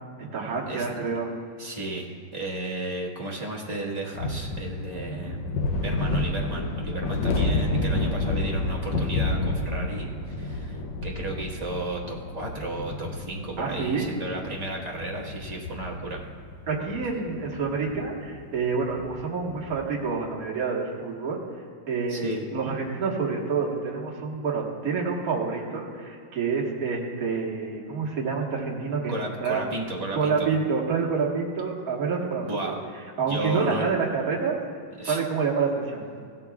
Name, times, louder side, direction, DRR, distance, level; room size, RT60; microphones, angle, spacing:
voice 1, 0.3-1.3 13.6-14.1 16.7-21.4 21.9-29.1 29.4-29.6 30.1-32.8 33.2-34.6 35.0-36.0, right 5 dB, 45° right, -3 dB, 1.8 m, -28 dB
voice 2, 1.6-5.5 5.8-16.2 22.1-22.4 29.1-30.5 32.4-32.7 33.3-33.9 35.0-35.2, right 2 dB, 20° right, -3 dB, 1.3 m, -33 dB
sound 1, 4.1-20.0, left 2 dB, 70° left, 1.5 m, -30 dB
17.0 x 12.5 x 2.4 m, 2.2 s
omnidirectional pair, 2.3 m